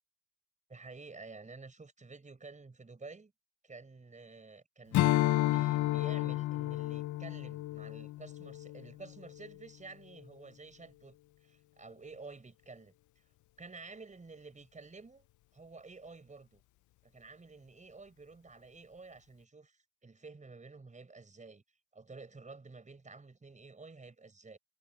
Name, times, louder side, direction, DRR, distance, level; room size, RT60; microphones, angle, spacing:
voice 1, 0.7-3.3 3.6-5.0 5.5-11.2 11.4-12.9 13.6-15.3 15.5-16.6 17.0-21.6 21.9-24.6, right 3 dB, 25° right, 5.5 m, -51 dB
Strum, 4.9-9.6, left 16 dB, 75° left, 0.6 m, -31 dB
cardioid pair, 90°, 30 cm